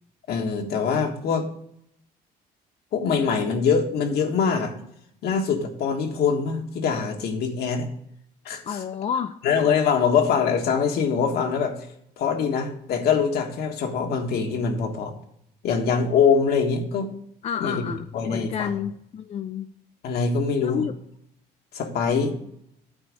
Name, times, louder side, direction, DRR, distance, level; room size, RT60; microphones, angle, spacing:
voice 1, 0.3-1.5 2.9-4.7 5.2-7.9 8.4-8.8 9.4-11.9 12.2-15.1 15.6-17.1 17.6-17.8 18.1-18.7 20.0-20.9 21.7-22.4, left 6 dB, 70° left, 4 dB, 1.4 m, -23 dB
voice 2, 8.6-9.4 17.4-19.7 20.6-20.9, left 8 dB, 40° left, 9 dB, 0.4 m, -30 dB
8.8 x 4.1 x 6.2 m, 0.72 s
cardioid pair, 110°, 17 cm